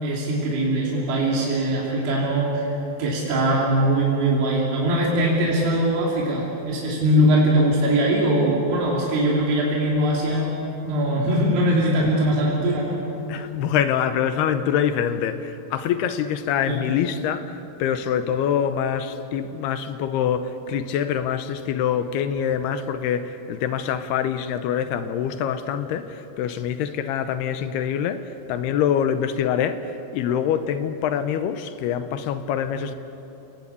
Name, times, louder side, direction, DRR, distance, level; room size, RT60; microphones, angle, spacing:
voice 1, 0.0-2.7 3.0-10.5 10.8-13.0 16.7-16.8, right 1 dB, 90° right, -4 dB, 5.4 m, -21 dB
voice 2, 13.3-28.2 28.5-33.0, left 8 dB, 75° left, 10 dB, 2.7 m, -25 dB
29.5 x 19.5 x 8.5 m, 2.9 s
omnidirectional pair, 5.1 m